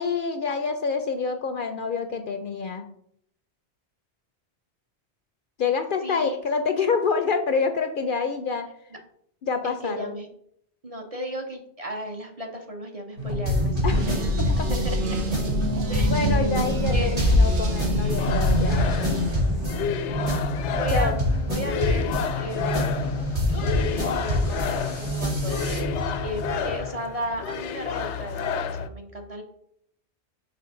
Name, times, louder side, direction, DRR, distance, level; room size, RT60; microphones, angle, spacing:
voice 1, 0.0-2.8 5.6-8.7 9.4-10.1 13.8-14.1 14.4-14.7 16.1-18.8 20.9-21.2, left 5 dB, 60° left, 7 dB, 0.6 m, -27 dB
voice 2, 6.0-6.4 8.9-9.0 9.6-10.3 10.8-15.2 15.9-16.1 16.9-17.2 19.7-20.4 20.7-22.9 23.5-29.4, equal, 35° right, 3 dB, 0.8 m, -35 dB
sound 1, 13.2-26.8, left 1 dB, 70° right, 3.2 m, -25 dB
sound 2, 13.9-19.9, right 1 dB, 90° right, 1.3 m, -28 dB
sound 3, 18.2-28.9, left 7 dB, 85° left, 0.9 m, -31 dB
5.9 x 5.1 x 3.7 m, 0.71 s
omnidirectional pair, 1.1 m